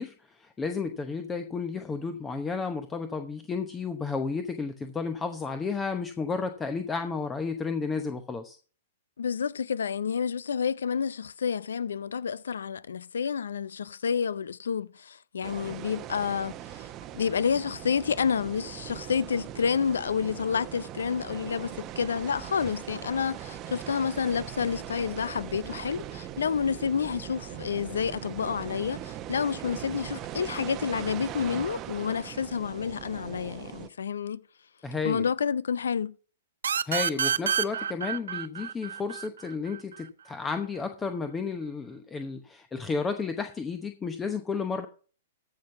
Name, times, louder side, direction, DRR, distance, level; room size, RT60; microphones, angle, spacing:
voice 1, 0.0-8.6 34.8-35.3 36.8-44.9, left 4 dB, 15° left, 0.9 m, -32 dB
voice 2, 9.2-16.9 17.1-34.4 35.0-36.1, left 6 dB, 75° left, 0.5 m, -29 dB
sound 1, 15.4-33.9, right 12 dB, 30° right, 0.8 m, -40 dB
sound 2, 36.6-40.0, right 8 dB, 75° right, 0.6 m, -29 dB
14.5 x 5.3 x 5.9 m
hypercardioid pair, 115°, 0 cm